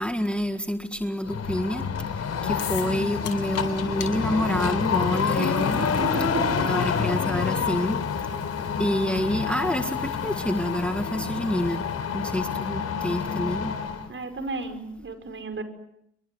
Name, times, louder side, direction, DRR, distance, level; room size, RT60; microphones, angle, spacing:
voice 1, 0.0-1.9 2.1-5.8 6.6-8.0 8.8-11.9 12.1-13.8, equal, 5° left, 7 dB, 1.7 m, -28 dB
sound 1, 1.2-14.1, left 6 dB, 55° left, 4.1 m, -28 dB
sound 2, 2.6-3.0 3.2-3.6 4.0-4.1 4.8-11.9, left 7 dB, 85° left, 7.2 m, -41 dB
voice 2, 5.2-6.7 14.1-15.6, right 3 dB, 40° right, 7 dB, 5.6 m, -33 dB
28.0 x 23.5 x 7.9 m, 0.77 s
cardioid pair, 90°, 30 cm